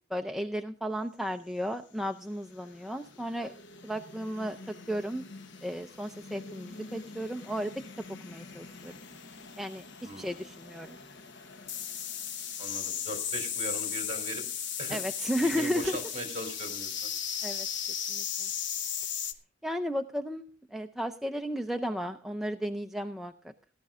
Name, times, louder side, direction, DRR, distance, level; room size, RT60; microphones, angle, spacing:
voice 1, 0.1-3.5 3.8-4.6 4.9-5.2 5.6-7.8 8.2-9.0 9.6-11.0 14.9-16.0 17.4-17.7 18.1-18.5 19.6-20.4 20.7-23.5, equal, ahead, 5 dB, 0.5 m, -34 dB
sound 1, 2.5-19.3, left 8 dB, 60° left, 1.1 m, -38 dB
voice 2, 12.6-14.4 14.8-15.0 15.4-17.1, right 1 dB, 35° right, 6 dB, 3.8 m, -39 dB
18.0 x 11.5 x 2.4 m, 0.38 s
head